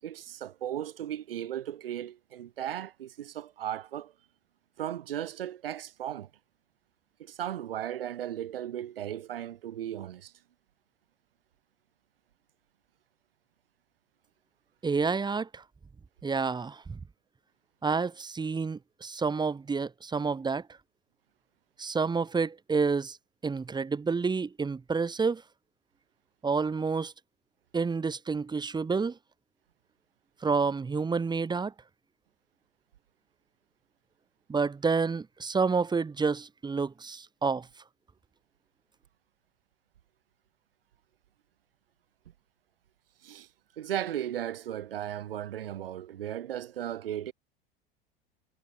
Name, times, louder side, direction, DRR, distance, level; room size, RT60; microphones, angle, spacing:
voice 1, 0.0-4.1 4.8-6.3 7.2-10.3 43.2-43.5 43.8-47.3, right 11 dB, 75° right, 6.9 m, -36 dB
voice 2, 14.8-15.6 16.2-16.8 17.8-20.6 21.8-23.2 23.4-25.4 26.4-27.1 27.7-29.1 30.4-31.7 34.5-37.7, right 4 dB, 15° right, 1.2 m, -29 dB
figure-of-eight pair, 75°, 29 cm